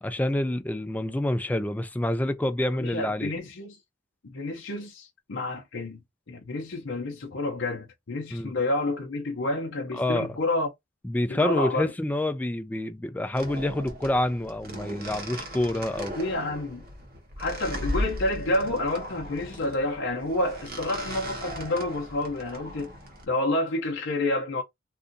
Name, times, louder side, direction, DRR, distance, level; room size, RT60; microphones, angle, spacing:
voice 1, 0.0-3.3 8.3-8.5 9.9-10.4 11.0-16.2, left 1 dB, 10° left, 0.3 m, -27 dB
voice 2, 2.7-3.8 4.2-6.0 6.3-10.7 11.3-11.9 16.2-16.8 17.4-22.9 23.3-24.6, left 2 dB, 65° left, 0.7 m, -29 dB
sound 1, 13.3-23.2, equal, 50° right, 0.9 m, -37 dB
2.6 x 2.4 x 3.7 m
head